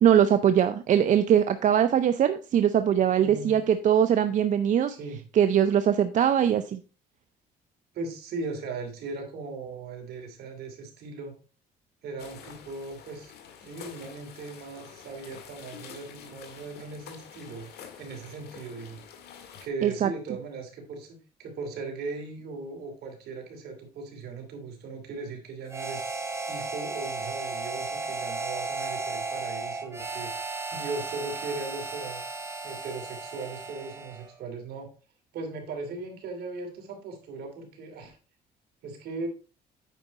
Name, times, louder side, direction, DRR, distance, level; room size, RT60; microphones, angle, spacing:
voice 1, 0.0-5.0 5.3-6.8 19.8-20.1, right 9 dB, 50° right, 11 dB, 0.6 m, -22 dB
voice 2, 3.2-3.6 4.9-5.2 7.9-11.4 12.0-13.3 13.6-19.0 19.6-32.2 32.6-34.9 35.3-38.2 38.8-39.3, right 3 dB, 70° right, 3 dB, 2.8 m, -38 dB
sound 1, 12.2-19.7, left 7 dB, 70° left, 1.8 m, -47 dB
Harmonica, 25.7-34.3, right 3 dB, 15° right, 1.5 m, -35 dB
9.1 x 4.9 x 4.1 m, 0.35 s
cardioid pair, 110°, 17 cm